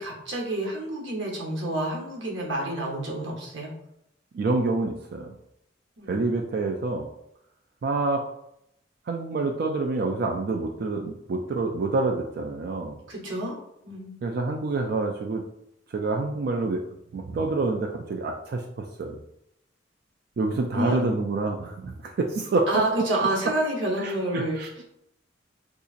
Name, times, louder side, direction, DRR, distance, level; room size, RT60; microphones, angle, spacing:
voice 1, 0.0-3.7 6.0-6.2 13.1-13.5 13.8-14.2 20.7-21.1 22.7-24.8, right 1 dB, 80° right, -1 dB, 1.0 m, -29 dB
voice 2, 4.3-5.3 6.1-7.1 7.8-8.2 9.1-13.0 14.2-15.4 15.9-16.8 17.1-19.2 20.4-22.8 24.0-24.7, right 3 dB, 55° right, 2 dB, 0.3 m, -27 dB
3.8 x 2.7 x 2.4 m, 0.79 s
head